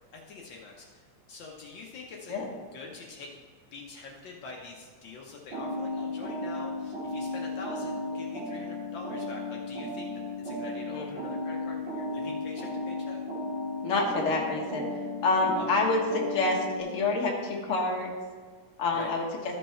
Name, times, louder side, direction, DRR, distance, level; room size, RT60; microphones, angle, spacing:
voice 1, 0.1-2.3 2.7-3.4 3.7-13.2 15.6-15.9 18.9-19.1, left 3 dB, 90° left, -1 dB, 1.0 m, -45 dB
sound 1, 5.5-16.8, left 2 dB, 40° right, 3.1 m, -35 dB
voice 2, 13.8-14.9 15.2-18.1 18.8-19.2, left 3 dB, 45° left, -1 dB, 1.1 m, -27 dB
14.0 x 5.5 x 4.3 m, 1.5 s
omnidirectional pair, 3.4 m